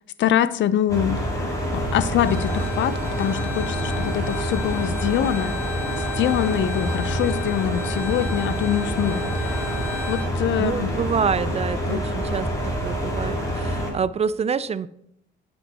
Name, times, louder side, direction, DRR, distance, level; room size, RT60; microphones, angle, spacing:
voice 1, 0.2-1.3 1.7-5.6 6.2-9.6 10.1-10.9 11.9-12.0, left 10 dB, 70° left, 16 dB, 0.5 m, -24 dB
sound 1, 0.9-13.9, equal, 15° left, 3.1 m, -27 dB
Bowed string instrument, 2.2-10.3, left 3 dB, 10° right, 1.5 m, -36 dB
voice 2, 10.6-14.9, right 6 dB, 35° right, 17 dB, 0.3 m, -27 dB
9.6 x 5.2 x 4.7 m, 0.75 s
cardioid pair, 90°, 20 cm